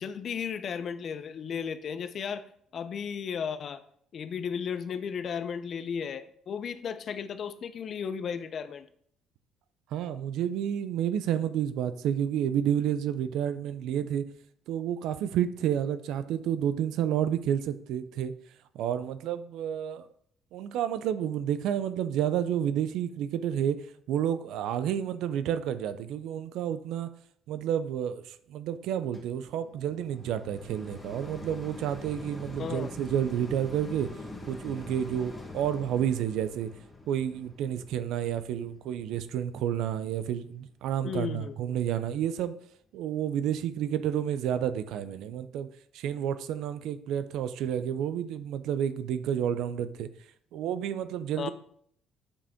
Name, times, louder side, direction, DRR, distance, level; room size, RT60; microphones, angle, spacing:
voice 1, 0.0-2.5 2.7-3.8 4.1-8.9 32.6-32.9 41.0-41.6 51.4-51.5, left 7 dB, 45° left, 11 dB, 0.5 m, -34 dB
voice 2, 9.9-14.2 14.7-18.3 18.7-20.1 20.5-27.1 27.5-34.1 34.5-36.7 37.1-42.5 42.9-45.7 45.9-50.1 50.5-51.5, right 9 dB, 75° right, 13 dB, 0.5 m, -30 dB
sound 1, 29.1-40.4 41.0-41.1, left 2 dB, 15° left, 1.3 m, -45 dB
8.4 x 5.1 x 3.6 m, 0.64 s
cardioid pair, 140°, 0 cm